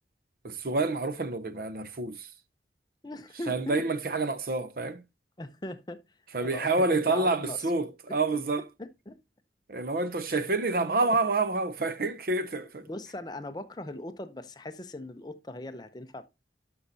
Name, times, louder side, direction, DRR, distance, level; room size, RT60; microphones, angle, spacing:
voice 1, 0.4-2.3 3.5-5.0 6.3-8.6 9.7-12.8, right 3 dB, 50° right, 0.6 m, -28 dB
voice 2, 3.0-3.9 5.4-6.0 6.4-7.7 8.1-8.2 8.8-9.2 10.7-11.2 12.8-16.2, left 1 dB, 25° left, 0.6 m, -40 dB
12.5 x 5.6 x 2.7 m
head